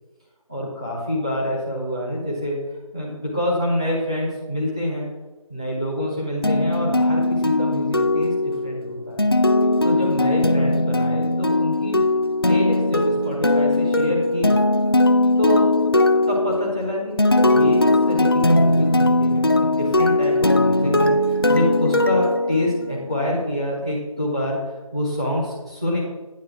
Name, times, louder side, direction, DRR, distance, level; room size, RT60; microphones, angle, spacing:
voice 1, 0.5-2.6 2.9-5.1 5.5-9.3 9.8-12.0 12.4-14.6 15.4-15.8 16.3-24.6 24.9-26.0, left 1 dB, 10° right, -6 dB, 0.9 m, -26 dB
sound 1, 6.4-23.1, left 2 dB, 40° left, 0.4 m, -19 dB
9.3 x 4.7 x 6.0 m, 1.1 s
figure-of-eight pair, 170°, 19 cm